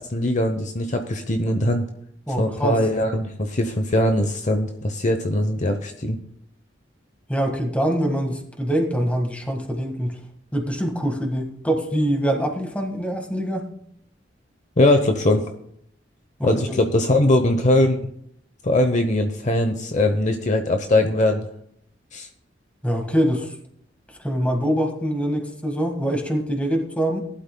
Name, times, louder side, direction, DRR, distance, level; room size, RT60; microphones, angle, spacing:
voice 1, 0.0-1.9 2.4-6.2 14.8-15.4 16.4-18.0 18.6-21.5 22.1-22.3, left 1 dB, 40° left, 6 dB, 0.9 m, -21 dB
voice 2, 2.3-2.8 7.3-10.2 10.5-13.7 16.4-16.5 22.8-23.5 24.2-27.2, equal, 5° left, 3 dB, 1.7 m, -24 dB
19.0 x 11.5 x 2.3 m, 0.70 s
head